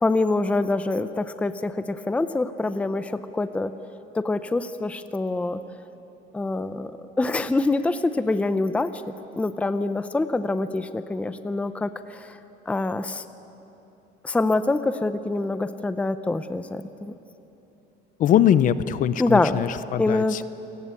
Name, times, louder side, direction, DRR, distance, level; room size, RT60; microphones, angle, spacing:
voice 1, 0.0-3.7 4.1-5.6 6.3-6.9 7.2-9.0 9.3-12.3 12.7-13.2 14.2-17.1 19.2-19.6 20.0-20.4, left 2 dB, 5° left, 11 dB, 0.6 m, -25 dB
voice 2, 18.2-20.4, left 10 dB, 45° left, 15 dB, 0.7 m, -22 dB
28.0 x 18.5 x 8.4 m, 3.0 s
cardioid pair, 155°, 18 cm